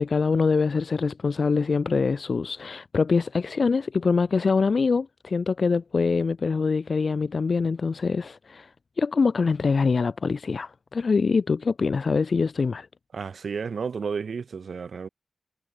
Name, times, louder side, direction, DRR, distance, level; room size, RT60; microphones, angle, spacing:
voice 1, 0.0-8.7 9.0-12.9, left 4 dB, 65° left, 0.3 m, -24 dB
voice 2, 13.1-15.1, right 5 dB, 80° right, 0.6 m, -32 dB
cardioid pair, 60°, 0 cm